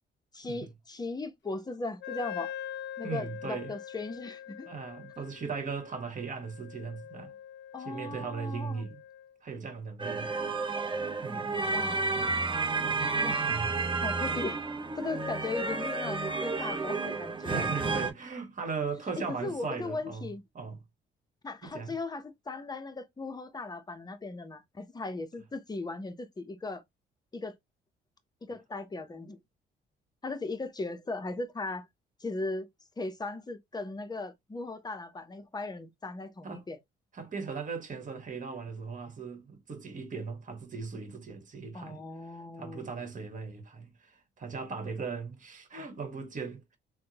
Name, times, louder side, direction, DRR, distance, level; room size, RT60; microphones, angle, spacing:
voice 1, 0.3-2.5 3.0-4.7 7.7-8.9 11.3-12.0 13.2-13.4 14.0-14.6 15.0-17.7 19.2-20.4 21.4-26.8 27.3-27.6 28.4-29.4 30.2-31.9 32.2-32.7 33.0-36.8 41.7-43.0, left 3 dB, 20° left, 0.7 m, -38 dB
Wind instrument woodwind instrument, 2.0-9.3, left 10 dB, 60° left, 0.6 m, -44 dB
voice 2, 3.0-3.7 4.7-7.3 7.8-9.0 9.4-10.7 11.2-11.5 12.1-12.2 12.7-13.7 17.5-20.3 20.5-20.8 21.6-21.9 36.4-36.6 37.1-42.0 42.6-46.8, right 5 dB, 40° right, 1.3 m, -38 dB
sound 1, 10.0-18.1, right 3 dB, 25° right, 0.8 m, -31 dB
3.5 x 2.2 x 2.8 m
cardioid pair, 90°, 20 cm